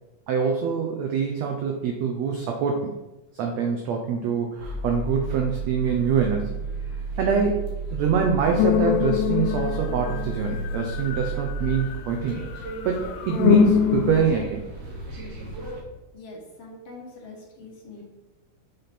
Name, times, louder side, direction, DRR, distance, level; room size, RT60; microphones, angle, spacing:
voice 1, 0.3-3.0 3.3-6.5 7.2-12.4 12.8-14.6, right 6 dB, 85° right, 3 dB, 1.5 m, -25 dB
sound 1, 4.6-15.8, right 3 dB, 55° right, 2.3 m, -33 dB
sound 2, 8.6-12.1 12.5-14.2, left 12 dB, 80° left, 2.0 m, -24 dB
voice 2, 16.1-18.0, left 2 dB, 55° left, -3 dB, 2.0 m, -43 dB
6.8 x 5.8 x 4.2 m, 1.1 s
omnidirectional pair, 3.9 m